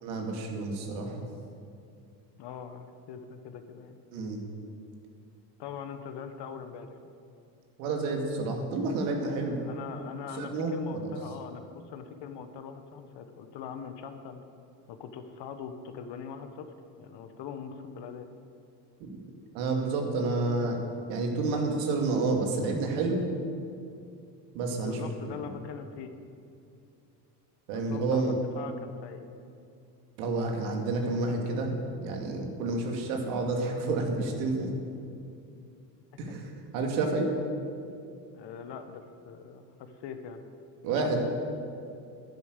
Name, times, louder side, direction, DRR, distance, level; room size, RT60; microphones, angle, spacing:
voice 1, 0.0-1.2 4.1-4.4 7.8-9.6 10.4-11.1 19.0-19.1 19.5-20.8 21.1-23.2 24.5-25.0 27.7-28.3 30.2-34.7 36.2-37.3 40.8-41.2, right 3 dB, 75° right, 2 dB, 2.4 m, -29 dB
voice 2, 2.4-4.0 5.6-6.9 9.6-14.4 14.9-18.3 24.8-26.1 27.7-29.2 38.3-40.4 40.9-41.2, left 7 dB, 55° left, 8 dB, 1.3 m, -42 dB
10.5 x 10.0 x 6.7 m, 2.5 s
supercardioid pair, 85°, 50 cm